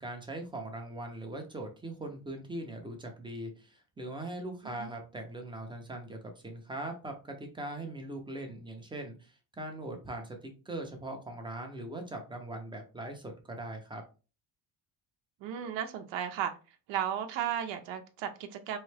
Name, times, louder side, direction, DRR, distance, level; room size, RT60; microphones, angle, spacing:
voice 1, 0.0-14.0, right 1 dB, 10° right, 3 dB, 0.5 m, -41 dB
voice 2, 15.4-16.5 16.9-18.8, right 9 dB, 90° right, 6 dB, 0.7 m, -34 dB
3.6 x 3.1 x 3.3 m, 0.33 s
cardioid pair, 170°, 43 cm